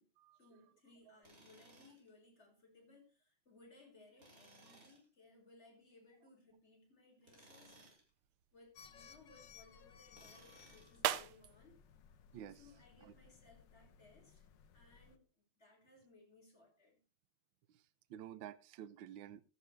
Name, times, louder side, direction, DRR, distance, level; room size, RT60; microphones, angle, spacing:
voice 1, 0.4-7.8 8.5-11.9 12.5-14.5 14.7-15.3 15.6-17.0, left 2 dB, 30° left, 5.8 m, -64 dB
Tools, 1.2-2.1 4.2-5.0 7.2-8.1 10.1-11.1, right 1 dB, 40° right, 6.2 m, -62 dB
sound 1, 7.8-13.4, right 11 dB, 90° right, 1.8 m, -46 dB
sound 2, 8.7-15.2, left 7 dB, 65° left, 1.6 m, -61 dB
voice 2, 17.7-19.4, right 10 dB, 70° right, 1.5 m, -51 dB
15.5 x 13.0 x 3.3 m
omnidirectional pair, 2.3 m